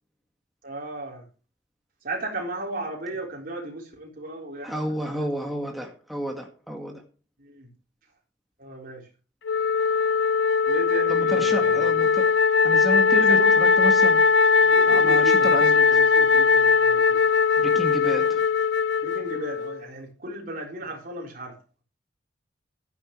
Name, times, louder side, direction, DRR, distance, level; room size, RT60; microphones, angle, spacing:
voice 1, 0.6-1.2 2.0-4.8 5.1-5.3 7.4-7.7 8.6-9.1 10.6-11.9 13.2-13.5 14.6-17.2 19.0-21.6, right 1 dB, 50° right, -1 dB, 4.3 m, -35 dB
voice 2, 4.6-7.0 11.1-12.4 12.6-14.2 14.8-16.0 17.6-18.5, equal, ahead, 1 dB, 1.9 m, -31 dB
Wind instrument woodwind instrument, 9.4-19.8, left 5 dB, 65° left, 0.7 m, -20 dB
12.5 x 11.0 x 3.2 m, 0.35 s
head